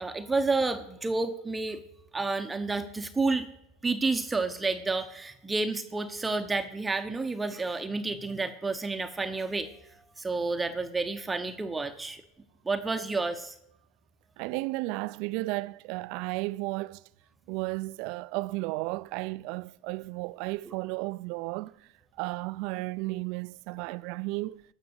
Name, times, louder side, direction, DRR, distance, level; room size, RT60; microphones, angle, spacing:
voice 1, 0.0-1.8 2.1-3.5 3.8-9.7 10.2-12.2 12.7-13.5 20.7-20.8, right 3 dB, 15° right, 0.8 m, -30 dB
voice 2, 14.4-17.0 17.5-21.7 22.2-24.6, right 21 dB, 65° right, 0.4 m, -33 dB
13.5 x 6.0 x 8.0 m
supercardioid pair, 115°, 0 cm